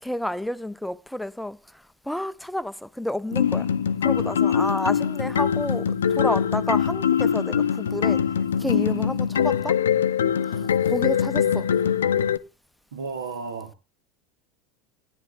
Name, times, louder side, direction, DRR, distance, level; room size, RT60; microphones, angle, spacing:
voice 1, 0.0-3.7 4.0-8.3 8.6-9.8 10.4-11.7, left 1 dB, 5° left, 0.5 m, -30 dB
sound 1, 3.3-12.4, left 8 dB, 75° left, 0.5 m, -23 dB
voice 2, 12.9-13.8, right 4 dB, 70° right, 1.2 m, -35 dB
19.5 x 10.5 x 2.3 m
figure-of-eight pair, 75°, 0 cm